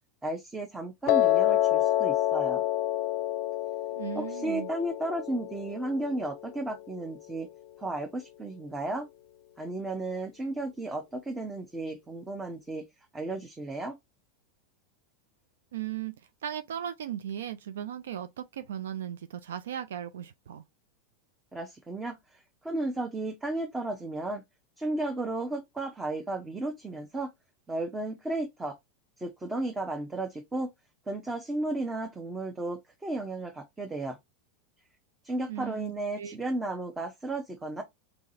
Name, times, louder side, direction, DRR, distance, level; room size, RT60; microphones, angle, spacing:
voice 1, 0.2-2.6 4.1-7.5 7.8-9.1 9.6-12.8 13.1-13.9 21.5-24.4 24.8-27.3 27.7-28.8 29.2-30.7 31.1-34.2 35.2-37.8, right 2 dB, 15° right, 0.8 m, -34 dB
Piano, 1.1-7.2, left 14 dB, 50° left, 0.5 m, -28 dB
voice 2, 3.9-4.7 15.7-20.6 35.5-35.9 36.2-36.4, right 10 dB, 70° right, 0.4 m, -37 dB
4.0 x 3.7 x 2.7 m
figure-of-eight pair, 85°, 0 cm